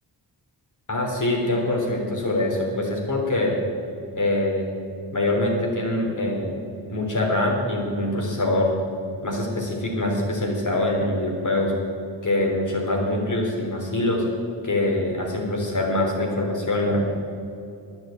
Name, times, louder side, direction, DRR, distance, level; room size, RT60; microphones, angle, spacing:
voice 1, 0.9-3.6 4.1-4.7 5.1-6.6 6.9-8.7 9.2-11.7 12.2-14.3 14.6-17.0, left 1 dB, 45° left, 0 dB, 3.7 m, -24 dB
11.0 x 8.9 x 8.7 m, 2.7 s
cardioid pair, 65°, 41 cm